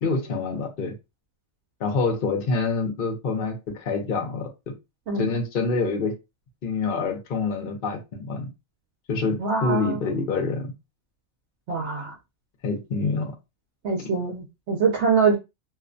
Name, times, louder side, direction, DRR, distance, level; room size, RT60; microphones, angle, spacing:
voice 1, 0.0-0.9 1.8-4.7 5.2-6.1 6.6-8.5 9.1-10.7 12.6-13.3, left 4 dB, 50° left, 0.7 m, -26 dB
voice 2, 9.4-10.0 11.7-12.1 13.8-15.4, right 5 dB, 65° right, 0.8 m, -24 dB
2.4 x 2.1 x 2.5 m
omnidirectional pair, 1.4 m